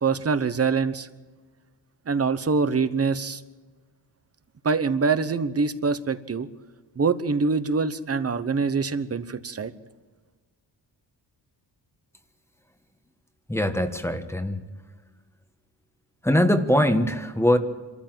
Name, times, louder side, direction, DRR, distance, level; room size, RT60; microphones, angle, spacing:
voice 1, 0.0-1.1 2.1-3.4 4.6-6.5 7.0-9.7, right 4 dB, 35° right, 12 dB, 1.1 m, -24 dB
voice 2, 13.5-14.6 16.2-17.6, left 1 dB, 5° left, 8 dB, 1.4 m, -22 dB
26.5 x 14.0 x 7.7 m, 1.3 s
wide cardioid pair, 125°, 42 cm